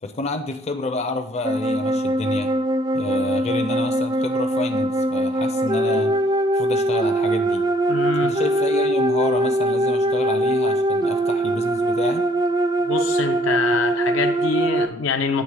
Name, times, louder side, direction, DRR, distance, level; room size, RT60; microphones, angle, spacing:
voice 1, 0.0-2.5 2.9-6.1 6.5-7.7 8.2-12.2, left 2 dB, 35° left, 6 dB, 0.5 m, -29 dB
sound 1, 1.4-14.9, right 1 dB, 20° right, 0.3 m, -22 dB
voice 2, 7.9-8.3 12.8-15.4, left 5 dB, 85° left, 6 dB, 0.6 m, -25 dB
8.7 x 3.2 x 4.8 m, 0.68 s
head